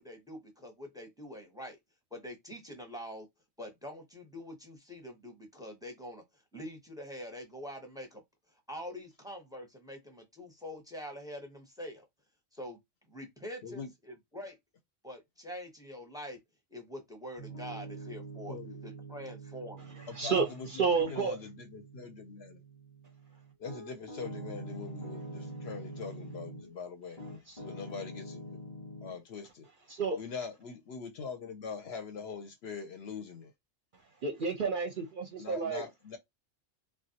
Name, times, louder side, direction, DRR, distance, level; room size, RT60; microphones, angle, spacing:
voice 1, 0.0-1.8 2.1-3.3 3.6-6.2 6.5-8.2 8.7-12.1 12.5-12.8 13.1-14.6 15.0-16.4 16.7-18.6 18.8-20.0, equal, 5° right, 0.6 m, -45 dB
Piano, 17.4-26.7 27.2-29.2, right 1 dB, 25° left, 0.8 m, -45 dB
voice 2, 18.5-18.8 20.1-20.7 20.9-22.6 23.6-27.2 27.6-28.6 29.0-29.7 30.2-33.5 35.4-36.2, left 5 dB, 65° left, 0.7 m, -42 dB
voice 3, 20.0-21.4 27.5-27.6 29.9-30.2 34.2-35.9, right 5 dB, 55° right, 0.6 m, -31 dB
3.3 x 2.4 x 2.7 m
omnidirectional pair, 1.3 m